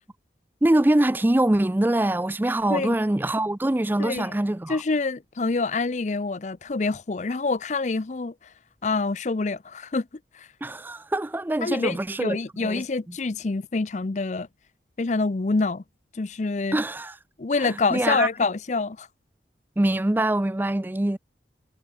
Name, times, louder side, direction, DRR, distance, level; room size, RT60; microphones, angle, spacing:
voice 1, 0.6-4.8 10.6-12.8 16.7-17.2 17.6-18.3 19.8-21.2, right 1 dB, 10° right, 0.4 m, -24 dB
voice 2, 4.0-4.3 4.7-8.3 8.8-10.1 10.3-10.5 11.6-14.5 15.0-15.8 16.1-16.8 17.4-19.1, left 3 dB, 40° left, 0.5 m, -26 dB
head